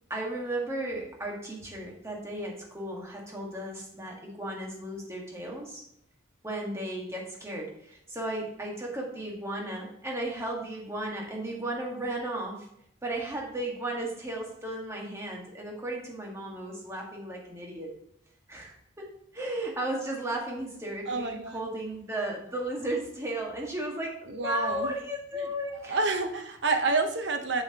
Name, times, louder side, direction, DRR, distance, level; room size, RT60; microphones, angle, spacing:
voice 1, 0.1-5.8 6.4-12.7 13.0-17.9 18.5-26.0, right 1 dB, 15° right, -1 dB, 1.6 m, -35 dB
voice 2, 21.1-21.7 24.2-24.9 25.3-25.5 25.8-27.6, right 3 dB, 70° right, 6 dB, 0.9 m, -29 dB
7.4 x 7.2 x 2.9 m, 0.73 s
head